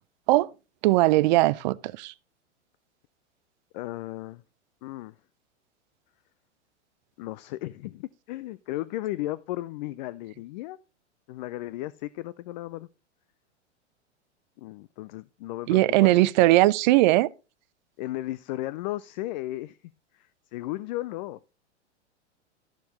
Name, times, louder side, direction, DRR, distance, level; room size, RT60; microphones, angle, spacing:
voice 1, 0.8-2.1 15.7-17.3, right 18 dB, 40° right, 0.4 m, -20 dB
voice 2, 3.7-4.4 4.8-5.2 7.2-10.8 11.3-12.9 14.6-16.1 18.0-19.8 20.1-21.4, left 16 dB, 40° left, 0.4 m, -35 dB
13.0 x 6.9 x 3.1 m
hypercardioid pair, 100°, 36 cm